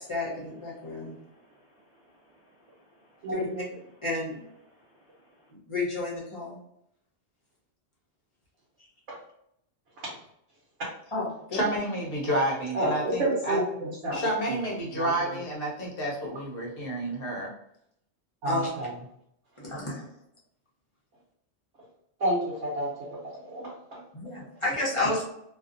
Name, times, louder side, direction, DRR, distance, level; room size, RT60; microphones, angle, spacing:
voice 1, 0.0-1.2 3.3-3.5 4.0-4.4 5.5-6.6 11.1-11.9 18.4-18.7 19.6-20.1 24.1-25.2, left 2 dB, 30° left, 0.7 m, -31 dB
voice 2, 0.7-3.3 4.7-5.5, equal, 5° right, 0.7 m, -62 dB
voice 3, 3.2-3.6 9.1-9.2 10.0-10.1 12.7-14.2 14.5-14.6 14.9-15.4 18.4-18.9 22.2-24.0, right 1 dB, 80° right, 1.1 m, -30 dB
voice 4, 11.5-13.6 14.1-17.5, right 1 dB, 55° left, 0.9 m, -30 dB
2.6 x 2.3 x 2.4 m
omnidirectional pair, 1.2 m